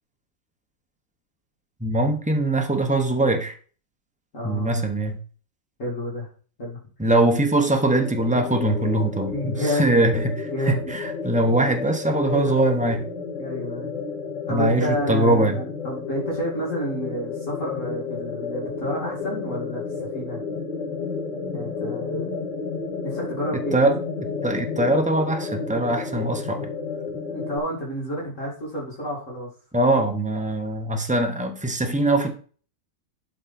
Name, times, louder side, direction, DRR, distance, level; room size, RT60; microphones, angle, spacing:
voice 1, 1.8-3.5 4.4-5.2 7.0-13.0 14.5-15.6 23.7-26.7 29.7-32.3, right 1 dB, 10° right, 0.5 m, -22 dB
voice 2, 4.3-4.8 5.8-6.3 6.6-6.8 9.3-10.0 10.5-10.9 12.2-12.7 13.4-14.0 14.5-20.4 21.5-22.4 23.0-23.9 27.3-29.5, equal, 40° left, 2.8 m, -30 dB
sound 1, 7.9-27.6, left 5 dB, 65° left, 2.7 m, -32 dB
12.0 x 4.8 x 4.3 m
omnidirectional pair, 2.1 m